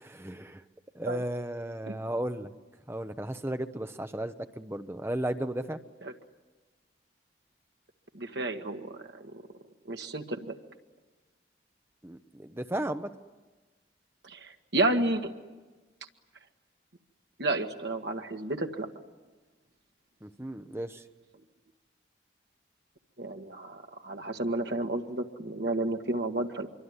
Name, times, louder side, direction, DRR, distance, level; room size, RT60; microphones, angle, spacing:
voice 1, 0.0-0.6 0.9-2.5 2.9-5.8 12.0-13.1 20.2-21.0, right 1 dB, 15° right, 8 dB, 0.8 m, -34 dB
voice 2, 8.1-9.2 9.9-10.5 14.3-15.3 17.4-18.9 23.2-26.7, right 2 dB, 70° right, 4 dB, 1.6 m, -31 dB
25.5 x 24.0 x 9.7 m, 1.3 s
head